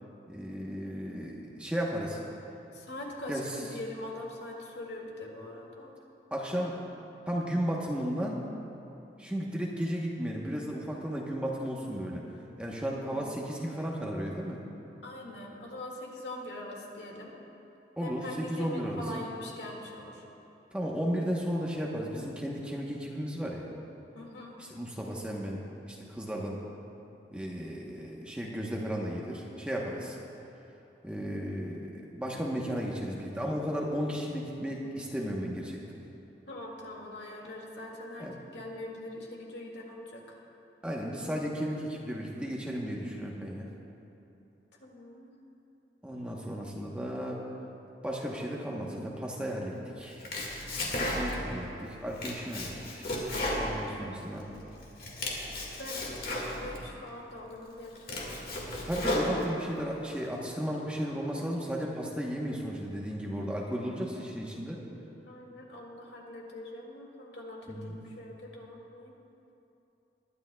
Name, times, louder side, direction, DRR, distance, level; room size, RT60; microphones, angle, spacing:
voice 1, 0.3-2.2 3.3-3.6 6.3-6.8 7.3-8.4 9.2-12.3 12.6-14.6 18.0-19.0 20.7-23.6 24.6-25.6 25.9-26.6 27.3-30.2 31.0-35.8 38.2-38.4 40.8-43.7 46.0-47.4 48.0-50.2 51.0-53.0 53.6-54.5 58.8-64.8 67.7-68.0, equal, 5° right, -3 dB, 1.0 m, -34 dB
voice 2, 2.7-5.9 12.9-13.3 15.0-17.3 18.0-20.2 24.1-24.6 29.8-29.9 36.5-40.4 44.8-45.3 55.8-58.4 65.3-69.1, left 1 dB, 80° left, -1 dB, 2.0 m, -43 dB
Domestic sounds home sounds, 50.0-51.6 51.9-54.4 54.8-56.8 57.4-57.5 57.9-59.8, left 1 dB, 55° left, 1.9 m, -34 dB
21.5 x 11.0 x 2.3 m, 2.9 s
head